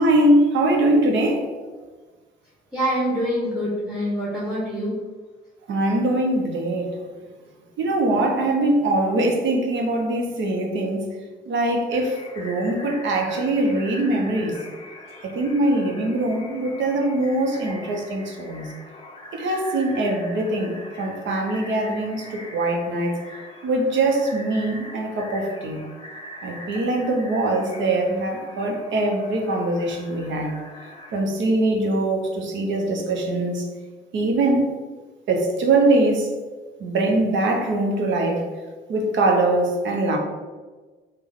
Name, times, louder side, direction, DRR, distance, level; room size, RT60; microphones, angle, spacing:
voice 1, 0.0-1.4 5.7-7.0 7.8-11.1 11.5-14.6 15.2-18.7 19.3-23.2 23.6-25.8 26.4-30.6 31.1-33.6 34.1-34.7 35.3-36.3 36.8-38.4 38.9-40.2, right 2 dB, 70° right, 1 dB, 0.7 m, -22 dB
voice 2, 2.7-4.9, equal, ahead, -7 dB, 1.0 m, -25 dB
sound 1, 11.9-31.2, left 1 dB, 25° left, 0.5 m, -42 dB
3.4 x 2.2 x 3.5 m, 1.4 s
cardioid pair, 90°, 20 cm